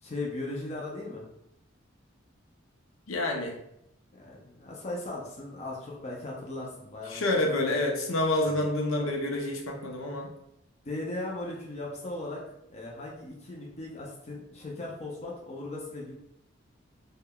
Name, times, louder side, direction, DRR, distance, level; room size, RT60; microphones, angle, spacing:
voice 1, 0.0-1.3 4.1-7.5 8.4-8.7 10.8-12.4 12.7-16.1, left 2 dB, 35° left, -3 dB, 0.5 m, -38 dB
voice 2, 3.1-3.6 7.1-10.3, left 2 dB, 90° left, 1 dB, 0.6 m, -28 dB
3.4 x 2.2 x 2.2 m, 0.80 s
head